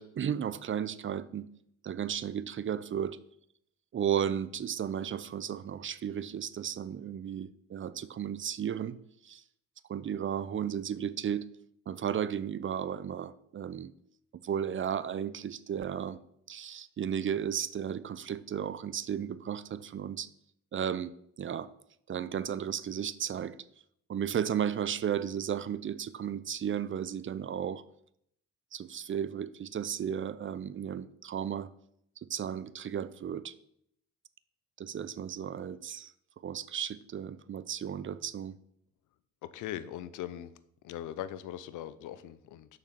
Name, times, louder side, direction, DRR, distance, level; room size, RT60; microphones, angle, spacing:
voice 1, 0.0-1.5 1.8-3.2 3.9-9.0 9.2-9.4 9.9-11.5 11.9-13.9 14.4-16.2 16.5-20.3 20.7-21.7 22.1-23.6 24.1-27.8 28.7-31.7 32.3-33.5 34.8-36.1 36.4-38.6, right 9 dB, 40° right, 0.6 m, -34 dB
voice 2, 39.4-40.5 40.8-42.8, left 12 dB, 85° left, 0.7 m, -40 dB
6.7 x 6.0 x 6.8 m
cardioid pair, 90°, 30 cm